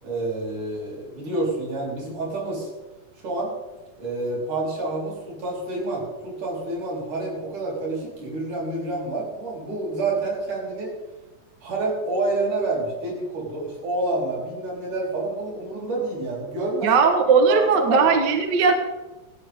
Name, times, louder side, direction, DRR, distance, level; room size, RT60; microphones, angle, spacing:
voice 1, 0.0-2.7 3.2-3.5 4.0-10.9 11.6-16.9 17.5-18.2, right 2 dB, 75° right, -4 dB, 6.1 m, -28 dB
voice 2, 16.8-18.7, right 5 dB, 45° right, 5 dB, 1.6 m, -18 dB
16.5 x 14.5 x 3.7 m, 1.1 s
omnidirectional pair, 3.6 m